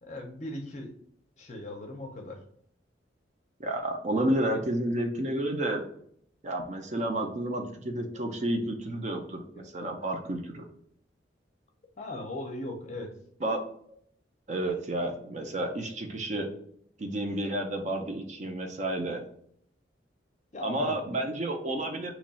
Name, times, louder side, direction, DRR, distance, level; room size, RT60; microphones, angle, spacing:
voice 1, 0.0-0.9 1.4-2.4 8.1-8.2 9.5-10.3 12.0-13.1 20.5-21.0, left 1 dB, 40° left, 3 dB, 0.6 m, -39 dB
voice 2, 3.6-5.8 6.4-10.7 13.4-13.6 14.5-16.5 17.0-19.2 20.6-22.1, right 1 dB, 40° right, 4 dB, 0.4 m, -31 dB
3.0 x 2.3 x 4.0 m, 0.66 s
head